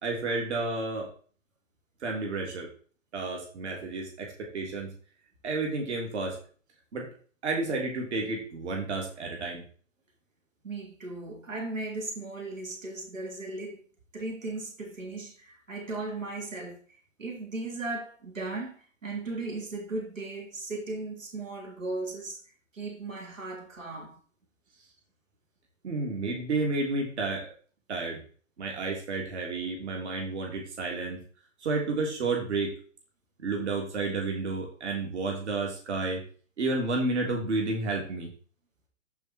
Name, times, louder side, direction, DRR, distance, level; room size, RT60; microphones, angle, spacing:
voice 1, 0.0-1.1 2.0-2.7 3.1-4.9 5.4-6.4 6.9-7.1 7.4-9.6 25.8-27.5 27.9-28.2 28.6-31.2 31.6-32.7 33.4-36.2 36.6-38.3, right 3 dB, 60° right, 3.3 m, -31 dB
voice 2, 10.6-13.8 14.1-22.4 22.7-24.2, right 2 dB, 80° right, 3.4 m, -37 dB
14.0 x 4.7 x 4.5 m
figure-of-eight pair, 125°, 38 cm